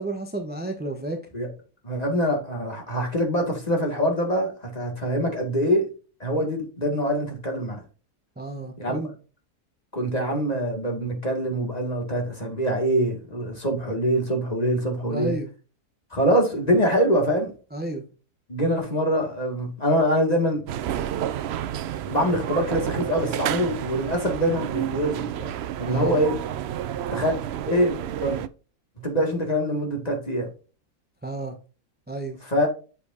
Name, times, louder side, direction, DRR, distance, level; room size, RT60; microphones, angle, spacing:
voice 1, 0.0-1.2 8.4-9.1 15.1-15.5 17.7-18.0 25.9-26.2 31.2-31.6 32.1-32.4, right 2 dB, 10° right, 0.6 m, -31 dB
voice 2, 1.8-5.9 6.2-7.8 8.8-9.0 9.9-15.3 16.1-17.5 18.5-20.6 22.1-25.5 25.8-26.4 27.1-27.3 27.7-28.4 29.0-30.5 32.4-32.7, equal, 25° left, 2.2 m, -24 dB
sound 1, 20.7-28.5, right 10 dB, 85° right, 0.5 m, -30 dB
7.8 x 6.8 x 2.6 m
omnidirectional pair, 1.6 m